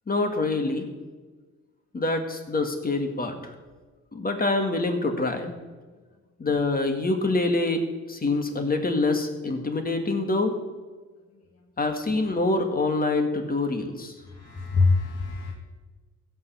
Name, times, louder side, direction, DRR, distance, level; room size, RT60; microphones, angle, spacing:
voice 1, 0.1-0.9 1.9-3.5 4.1-5.5 6.4-10.6 11.8-14.1, left 2 dB, 30° left, 6 dB, 1.9 m, -25 dB
voice 2, 14.3-15.5, left 3 dB, 55° left, 0 dB, 1.8 m, -24 dB
16.0 x 5.6 x 7.2 m, 1.3 s
cardioid pair, 90°, 30 cm